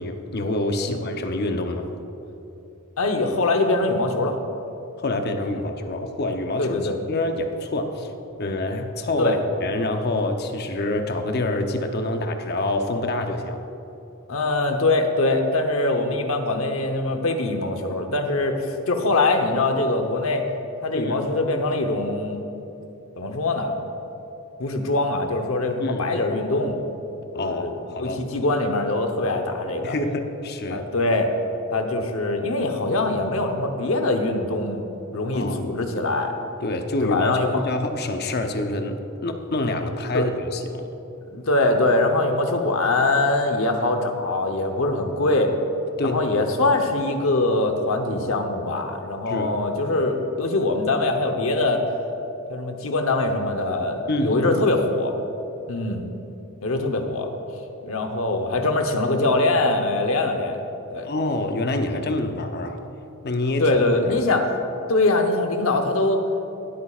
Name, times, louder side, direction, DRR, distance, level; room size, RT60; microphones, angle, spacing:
voice 1, 0.0-1.9 5.0-8.1 8.4-9.4 9.6-13.6 20.9-21.2 25.8-26.0 27.3-28.2 29.8-30.8 35.3-35.6 36.6-40.9 46.0-46.5 49.3-49.5 54.1-54.4 61.0-62.8 63.2-63.7, left 2 dB, 50° left, 5 dB, 0.7 m, -26 dB
voice 2, 3.0-4.4 6.6-7.0 9.2-9.4 14.3-20.5 20.8-22.4 23.2-23.8 24.6-26.8 27.3-30.0 30.7-31.3 31.7-34.8 35.1-36.3 37.0-37.6 40.1-40.3 41.3-45.6 46.0-51.8 52.5-55.1 55.7-56.1 56.6-57.3 57.8-60.6 60.9-61.1 63.6-64.6 64.9-66.2, left 2 dB, 70° left, 4 dB, 0.9 m, -23 dB
19.0 x 8.4 x 2.4 m, 2.9 s
head